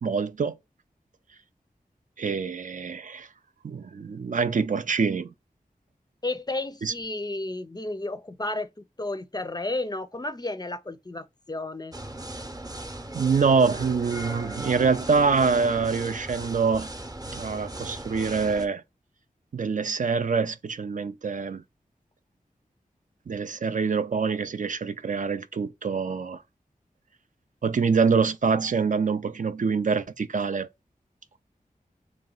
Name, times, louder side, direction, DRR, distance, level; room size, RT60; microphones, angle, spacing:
voice 1, 0.0-0.6 2.2-3.3 3.6-5.3 6.8-6.9 13.1-16.9 17.3-18.8 19.5-21.6 23.3-26.4 27.6-30.7, right 5 dB, 55° right, 0.4 m, -25 dB
voice 2, 6.2-11.9, left 2 dB, 25° left, 0.5 m, -32 dB
sound 1, 11.9-18.6, right 1 dB, 25° right, 0.8 m, -37 dB
3.2 x 2.9 x 3.8 m
wide cardioid pair, 50°, 16 cm